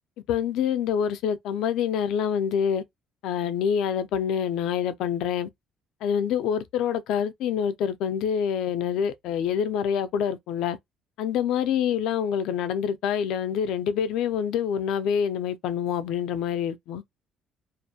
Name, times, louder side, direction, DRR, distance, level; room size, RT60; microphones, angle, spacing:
voice 1, 0.3-2.8 3.2-5.5 6.0-10.8 11.2-17.0, left 8 dB, 75° left, 0.4 m, -26 dB
2.4 x 2.2 x 2.7 m
cardioid pair, 135°, 0 cm